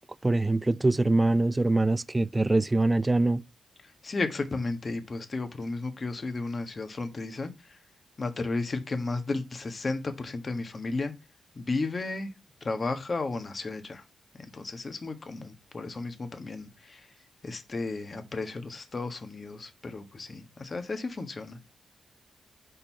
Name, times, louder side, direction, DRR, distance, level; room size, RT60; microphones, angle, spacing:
voice 1, 0.2-3.4, right 2 dB, 20° right, 0.3 m, -24 dB
voice 2, 4.0-7.8 8.2-11.1 11.5-12.3 12.6-14.0 14.4-17.1 17.4-21.6, left 3 dB, 40° left, 1.4 m, -33 dB
5.4 x 4.5 x 5.6 m
cardioid pair, 80°, 0 cm